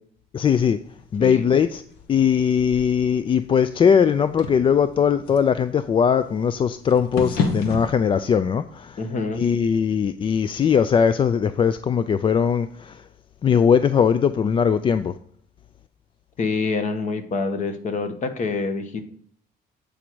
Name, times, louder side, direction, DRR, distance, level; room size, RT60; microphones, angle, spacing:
voice 1, 0.3-0.8 1.1-1.8 2.1-9.0 9.3-13.0 13.4-15.1, left 7 dB, 30° left, 0.3 m, -20 dB
sound 1, 0.8-7.9, left 4 dB, 90° left, 1.3 m, -33 dB
voice 2, 9.0-9.4 16.4-19.0, left 4 dB, 45° left, 1.2 m, -26 dB
8.4 x 5.1 x 4.5 m
cardioid pair, 110°, 17 cm